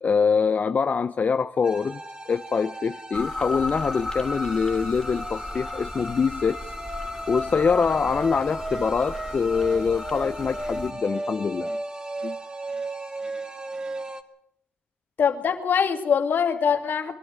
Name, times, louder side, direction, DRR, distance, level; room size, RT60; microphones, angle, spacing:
voice 1, 0.0-6.7 7.3-11.8 12.2-12.4, left 5 dB, 50° left, 11 dB, 0.7 m, -24 dB
sound 1, 1.6-14.2, right 2 dB, 25° right, 2.0 m, -35 dB
sound 2, 3.1-10.9, left 2 dB, 20° left, 3.1 m, -35 dB
voice 2, 15.2-17.2, left 7 dB, 65° left, 6 dB, 2.5 m, -23 dB
23.0 x 12.5 x 9.7 m, 0.76 s
supercardioid pair, 60°, 4 cm